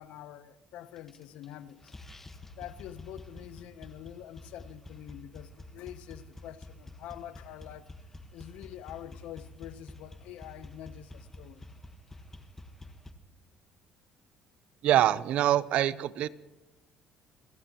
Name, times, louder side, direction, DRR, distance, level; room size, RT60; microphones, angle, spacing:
voice 1, 0.0-2.0 2.6-7.9 8.3-11.6, left 12 dB, 80° left, 0.8 m, -46 dB
sound 1, 1.0-1.5 1.8-13.1, left 2 dB, 15° left, 1.3 m, -48 dB
voice 2, 14.8-16.3, right 12 dB, 70° right, 0.6 m, -25 dB
28.5 x 16.5 x 3.0 m
cardioid pair, 105°, 2 cm